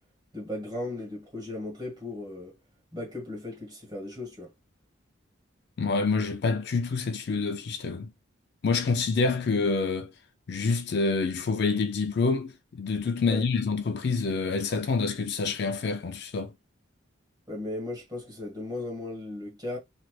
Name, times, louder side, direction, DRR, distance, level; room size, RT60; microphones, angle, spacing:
voice 1, 0.3-2.5 2.9-4.5 13.3-13.4 17.5-19.8, left 2 dB, 20° right, 1.6 m, -36 dB
voice 2, 5.8-8.1 8.6-10.1 10.5-16.5, left 4 dB, 55° left, 0.4 m, -27 dB
3.1 x 2.9 x 2.3 m
head